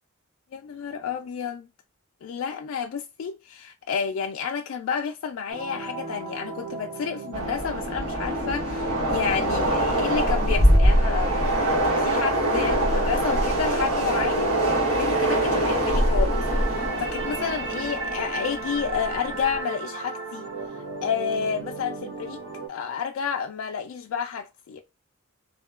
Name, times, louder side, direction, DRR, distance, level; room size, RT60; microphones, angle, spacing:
voice 1, 0.5-1.7 2.2-11.6 11.8-20.5 21.0-22.4 22.7-24.8, left 7 dB, 70° left, 0.3 m, -30 dB
sound 1, 5.5-22.7, right 4 dB, 55° right, 0.8 m, -35 dB
Train, 7.3-19.6, right 1 dB, 80° right, 1.2 m, -24 dB
2.9 x 2.2 x 2.2 m
head